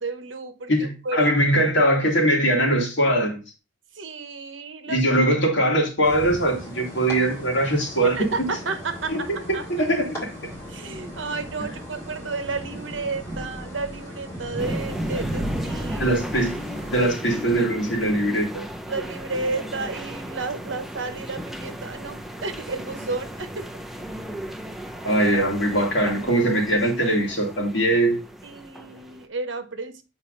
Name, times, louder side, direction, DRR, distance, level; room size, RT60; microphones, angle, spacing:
voice 1, 0.0-1.3 3.9-5.2 5.5-5.6 8.0-9.6 10.7-16.1 18.9-23.7 26.0-26.1 28.4-30.0, right 3 dB, 70° right, 1.1 m, -32 dB
voice 2, 0.7-3.4 4.9-8.3 9.1-9.2 9.8-10.1 11.6-11.7 16.0-16.6 16.9-18.6 25.0-28.2, right 1 dB, 65° left, 2.5 m, -21 dB
sound 1, 6.0-16.9, left 1 dB, 15° left, 3.8 m, -39 dB
sound 2, 10.5-18.4, right 1 dB, 15° right, 2.9 m, -35 dB
sound 3, 14.6-29.3, equal, ahead, 0.6 m, -36 dB
7.7 x 4.4 x 3.9 m
head